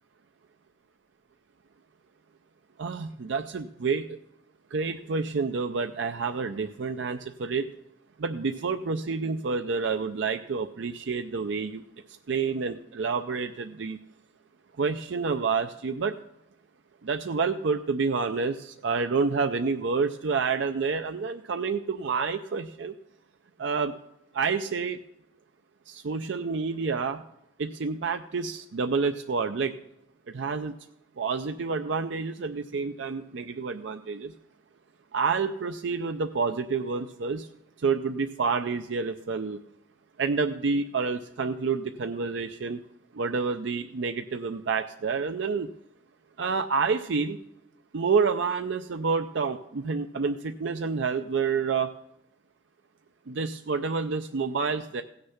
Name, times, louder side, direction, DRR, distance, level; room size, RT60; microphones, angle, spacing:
voice 1, 2.8-4.2 4.7-7.7 8.2-11.8 12.3-14.0 14.8-16.1 17.0-22.9 23.6-23.9 24.3-25.0 25.9-27.2 27.6-29.8 30.3-30.7 31.2-34.3 35.1-37.5 37.8-39.6 40.2-42.8 43.1-45.7 46.4-47.4 47.9-51.9 53.3-55.0, right 5 dB, 70° right, 7 dB, 0.5 m, -28 dB
16.0 x 6.6 x 5.7 m, 0.81 s
head